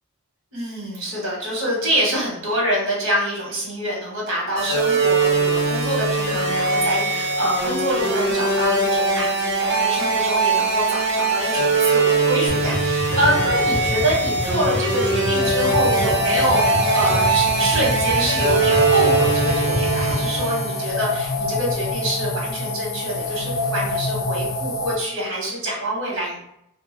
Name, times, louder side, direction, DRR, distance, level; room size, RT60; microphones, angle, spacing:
voice 1, 0.5-26.4, equal, 90° right, -3 dB, 1.1 m, -25 dB
sound 1, 4.6-21.0, right 3 dB, 65° right, 1.0 m, -21 dB
sound 2, 12.5-20.4, equal, 40° left, 0.9 m, -29 dB
sound 3, 15.4-25.0, left 2 dB, 65° left, 0.4 m, -26 dB
2.3 x 2.1 x 3.1 m, 0.77 s
head